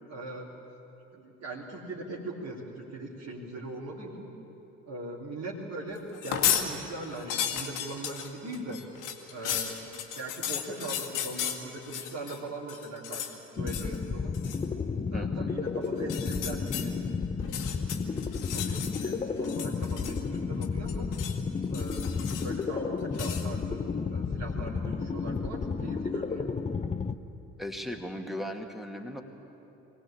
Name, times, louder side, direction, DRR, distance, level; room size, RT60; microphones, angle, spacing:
voice 1, 0.1-0.5 1.1-4.3 4.9-8.8 9.3-13.3 13.6-14.3 15.1-16.9 17.4-21.1 21.7-23.8 24.1-26.5, right 2 dB, 45° right, -5 dB, 3.2 m, -40 dB
sound 1, 6.1-6.7 7.0-12.4 12.7-13.3 13.7-14.0 14.3-14.6 16.0-16.9 17.4-19.1 19.4-20.4 20.6-21.4 21.7-22.6 23.1-23.5, left 9 dB, 55° left, 2.0 m, -34 dB
sound 2, 13.6-27.2, left 5 dB, 20° left, 0.8 m, -32 dB
voice 2, 15.1-15.5 27.6-29.2, equal, ahead, 4 dB, 2.3 m, -37 dB
23.0 x 17.5 x 8.6 m, 3.0 s
figure-of-eight pair, 55°, 37 cm